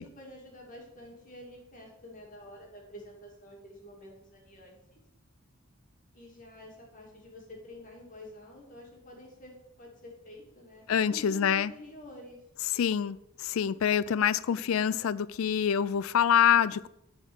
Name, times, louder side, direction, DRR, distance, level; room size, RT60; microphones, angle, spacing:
voice 1, 0.0-5.0 6.1-12.4, left 1 dB, 40° left, 2.5 m, -48 dB
voice 2, 10.9-11.7 12.7-16.9, left 8 dB, 70° left, 0.4 m, -26 dB
9.8 x 4.5 x 6.1 m
head